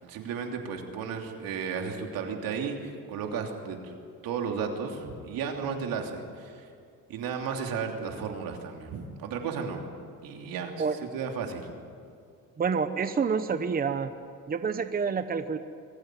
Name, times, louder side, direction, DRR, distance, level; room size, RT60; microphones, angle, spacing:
voice 1, 0.0-3.9 4.2-6.7 7.1-9.9 10.2-10.9 11.1-11.7, right 6 dB, 80° right, 3 dB, 3.1 m, -34 dB
voice 2, 12.6-14.1 14.5-15.6, right 5 dB, 25° right, 10 dB, 0.9 m, -28 dB
23.0 x 15.0 x 9.2 m, 2.4 s
cardioid pair, 125°, 34 cm